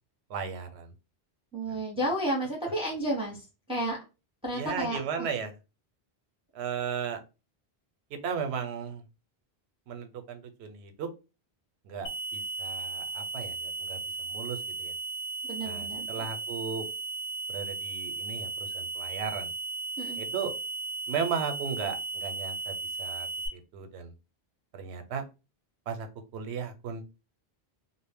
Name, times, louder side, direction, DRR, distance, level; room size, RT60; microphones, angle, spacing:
voice 1, 0.3-0.9 4.5-5.5 6.5-7.2 8.1-9.0 9.9-11.1 11.8-14.9 15.6-16.9 17.5-19.5 20.2-20.5 21.1-24.1 24.7-25.2 25.9-26.1 26.3-27.0, right 6 dB, 90° right, 6 dB, 0.9 m, -36 dB
voice 2, 1.5-4.0 4.4-5.3 15.4-16.3 20.0-20.2, right 1 dB, 5° right, -2 dB, 0.7 m, -32 dB
sound 1, 12.1-23.5, right 4 dB, 75° left, 0.9 m, -36 dB
2.1 x 2.0 x 3.4 m, 0.29 s
omnidirectional pair, 1.1 m